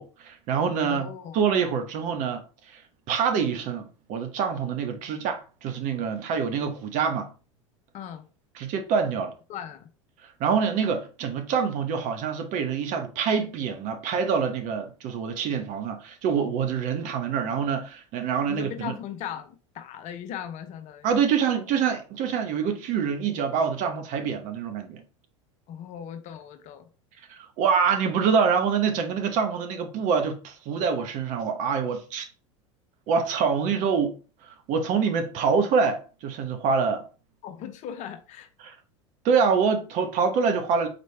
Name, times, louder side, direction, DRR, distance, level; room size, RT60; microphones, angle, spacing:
voice 1, 0.0-2.8 3.1-7.3 8.5-9.3 10.2-19.0 21.0-25.0 27.3-32.3 33.1-37.0 38.6-38.8 39.2-40.9, right 6 dB, 50° right, 1.0 m, -26 dB
voice 2, 0.8-1.4 7.9-8.2 9.5-9.9 18.5-21.1 25.7-26.9 37.4-38.5, left 9 dB, 50° left, 0.8 m, -38 dB
4.3 x 3.2 x 3.2 m
hypercardioid pair, 85°, 16 cm